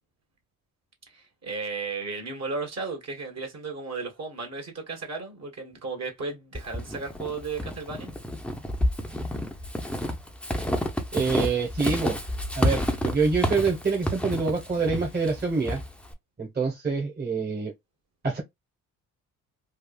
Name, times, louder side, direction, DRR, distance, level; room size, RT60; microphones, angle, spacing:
voice 1, 1.1-8.1, right 4 dB, 45° right, 1.6 m, -34 dB
Walk footsteps / Squeak, 6.5-16.1, equal, 5° left, 0.7 m, -30 dB
voice 2, 11.1-12.2 12.5-15.8 16.4-17.7 18.2-18.4, right 4 dB, 25° right, 1.3 m, -26 dB
3.5 x 2.4 x 2.3 m
supercardioid pair, 70°, 37 cm